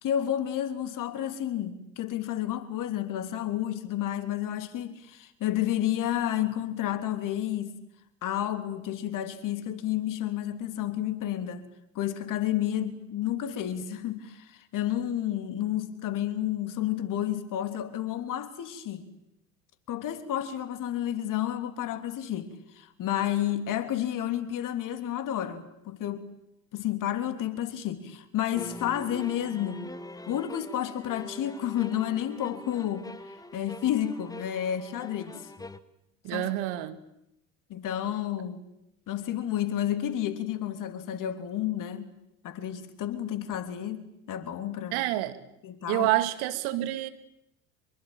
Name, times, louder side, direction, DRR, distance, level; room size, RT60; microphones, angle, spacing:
voice 1, 0.0-7.8 8.2-11.7 11.9-19.1 19.9-26.3 26.7-29.8 30.3-33.1 33.5-35.5 36.3-36.5 37.7-38.7 39.1-42.1 42.4-45.0 45.6-46.1, left 11 dB, 45° left, 3.3 m, -31 dB
sound 1, 28.5-35.8, left 1 dB, 10° left, 1.4 m, -43 dB
voice 2, 36.2-37.0 44.9-45.4 45.9-47.1, right 15 dB, 60° right, 2.2 m, -28 dB
25.5 x 22.5 x 9.0 m
hypercardioid pair, 75°, 43 cm